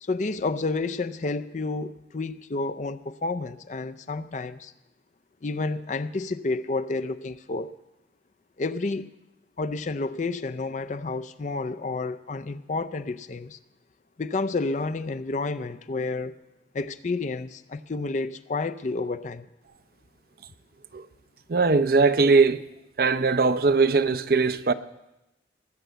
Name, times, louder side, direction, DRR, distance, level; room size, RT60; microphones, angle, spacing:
voice 1, 0.0-4.7 5.4-7.7 8.6-9.1 9.6-13.6 14.2-16.4 16.7-19.5, left 3 dB, 40° left, 0.5 m, -30 dB
voice 2, 21.5-22.6 23.0-24.7, right 4 dB, 55° right, 0.6 m, -20 dB
19.5 x 6.8 x 8.0 m
head